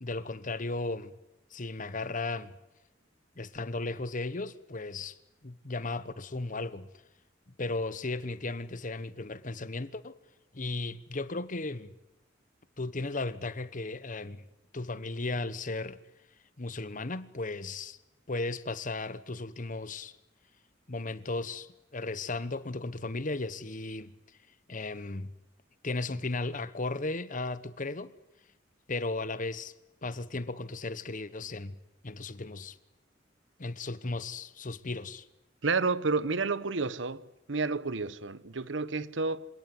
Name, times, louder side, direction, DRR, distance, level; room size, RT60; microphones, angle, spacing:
voice 1, 0.0-1.1 1.5-2.5 3.4-5.2 5.4-6.9 7.6-10.2 10.5-12.0 12.8-14.4 14.7-16.0 16.6-18.0 18.3-20.1 20.9-24.1 24.7-25.3 25.8-28.1 28.9-29.7 30.0-31.8 32.0-32.8 33.6-35.2, left 2 dB, 45° left, 1.1 m, -35 dB
voice 2, 35.6-37.2 37.5-39.5, right 4 dB, 75° right, 1.0 m, -30 dB
26.5 x 17.5 x 9.6 m
head